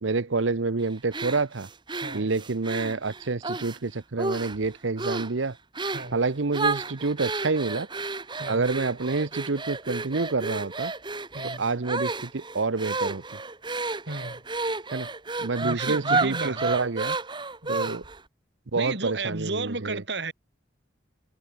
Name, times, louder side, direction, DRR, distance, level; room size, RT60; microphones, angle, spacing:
voice 1, 0.0-1.7 2.1-5.6 6.1-7.9 8.5-10.9 11.6-13.2 14.9-15.1 15.4-17.2 17.7-18.0 18.7-20.0, right 3 dB, 80° right, 0.9 m, -28 dB
sound 1, 1.1-3.8 4.2-4.7 5.0-5.3 5.8-6.1 6.5-18.2, right 3 dB, 25° right, 2.1 m, -31 dB
voice 2, 5.9-6.2 8.4-8.7 11.3-11.7 14.1-14.4 15.6-16.8 17.6-17.9 18.7-20.3, right 3 dB, 60° right, 3.9 m, -33 dB
head